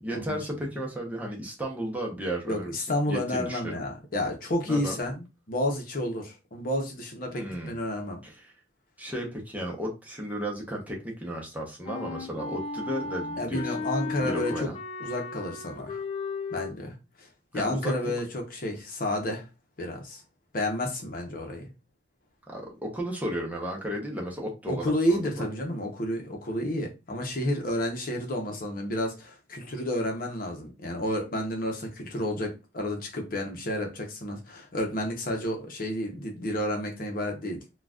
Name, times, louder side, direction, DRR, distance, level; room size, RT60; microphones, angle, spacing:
voice 1, 0.0-2.7 3.1-3.8 4.7-5.0 7.3-7.7 8.2-8.4 9.0-13.9 14.2-14.8 17.5-17.9 22.5-25.4, equal, 10° right, 0.7 m, -34 dB
voice 2, 2.5-8.2 13.4-14.7 15.0-16.0 16.5-17.3 17.5-19.5 19.8-20.2 20.5-21.7 24.7-37.6, left 1 dB, 50° left, 0.8 m, -31 dB
Wind instrument woodwind instrument, 11.9-16.7, left 4 dB, 35° left, 0.3 m, -35 dB
3.8 x 2.3 x 2.3 m
head